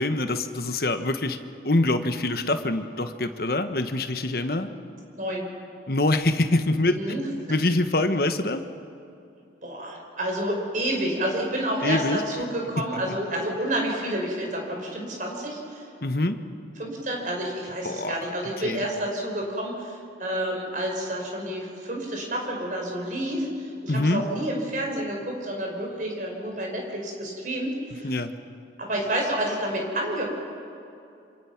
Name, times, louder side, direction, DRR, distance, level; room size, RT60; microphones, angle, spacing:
voice 1, 0.0-1.4 1.6-4.7 5.9-7.0 7.5-8.6 11.8-12.2 16.0-16.4 17.8-18.2 18.6-18.8 23.9-24.2 28.0-28.3, left 2 dB, 55° left, 8 dB, 1.3 m, -24 dB
voice 2, 6.9-7.3 9.6-15.9 16.8-28.1 28.8-30.2, right 1 dB, 45° right, 0 dB, 5.1 m, -29 dB
28.0 x 27.0 x 6.0 m, 2.6 s
head